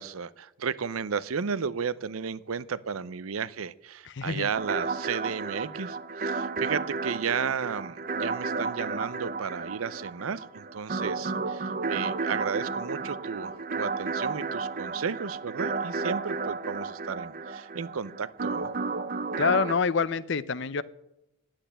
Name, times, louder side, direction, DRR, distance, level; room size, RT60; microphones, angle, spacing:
voice 1, 0.0-18.7, right 6 dB, 80° right, 18 dB, 0.6 m, -33 dB
voice 2, 4.0-4.5 19.4-20.8, left 5 dB, 55° left, 18 dB, 0.6 m, -26 dB
sound 1, 4.6-19.7, right 4 dB, 40° right, 0.7 m, -32 dB
10.0 x 8.9 x 9.9 m, 0.86 s
head